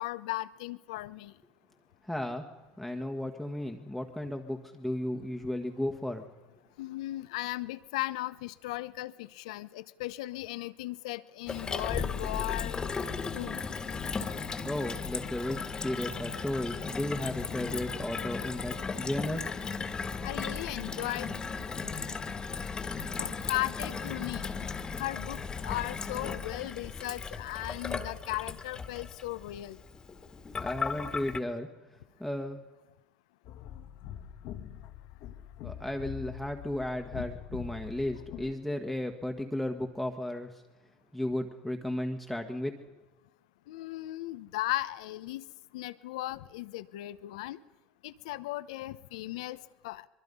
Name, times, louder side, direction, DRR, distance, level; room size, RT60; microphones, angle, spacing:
voice 1, 0.0-1.3 6.8-12.7 13.3-13.6 20.2-21.3 21.8-22.2 23.2-24.7 25.0-29.8 43.7-45.4 45.7-47.6 48.0-50.1, left 17 dB, 85° left, 15 dB, 0.9 m, -37 dB
voice 2, 2.0-2.5 2.8-6.2 14.6-19.5 30.6-31.7 32.2-32.6 35.6-40.6 41.1-42.8, left 1 dB, ahead, 2 dB, 1.5 m, -34 dB
Gurgling / Water tap faucet / Sink (filling or washing), 11.5-31.4, left 5 dB, 20° left, 1.8 m, -36 dB
sound 1, 33.5-38.5, left 10 dB, 60° left, 1.6 m, -43 dB
23.5 x 22.5 x 5.5 m, 1.1 s
supercardioid pair, 110°, 3 cm